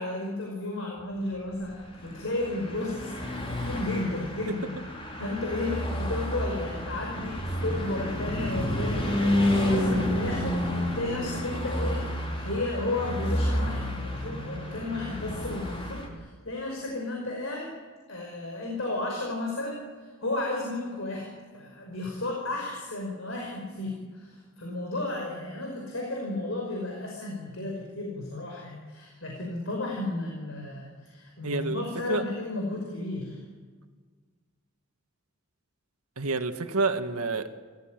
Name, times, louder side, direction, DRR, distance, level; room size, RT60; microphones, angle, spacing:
voice 1, 0.0-4.8 5.2-12.1 12.4-17.7 18.1-21.3 21.5-33.4, left 2 dB, 60° left, 0 dB, 5.6 m, -33 dB
Car passing by / Truck, 1.7-16.1, left 1 dB, 25° left, 4.1 m, -30 dB
voice 2, 31.4-31.8 32.1-32.2 36.2-37.5, right 3 dB, 90° right, 6 dB, 1.9 m, -28 dB
29.5 x 15.5 x 9.2 m, 1.5 s
head